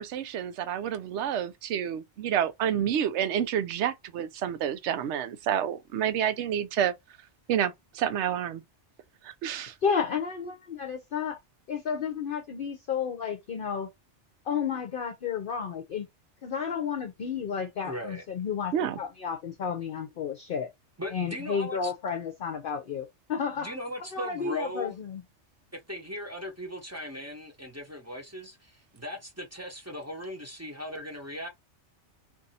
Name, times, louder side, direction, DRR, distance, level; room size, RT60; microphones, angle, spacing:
voice 1, 0.0-6.9 7.5-8.6 9.2-9.7 18.7-19.0, right 9 dB, 75° right, 0.8 m, -29 dB
voice 2, 9.8-11.4 11.7-13.9 14.5-16.1 16.4-20.7 21.1-23.7 24.1-25.2, left 6 dB, 55° left, 0.7 m, -32 dB
voice 3, 17.8-18.2 21.0-21.9 23.6-24.9 25.9-31.5, left 1 dB, 15° right, 0.8 m, -38 dB
2.7 x 2.6 x 4.0 m
omnidirectional pair, 1.2 m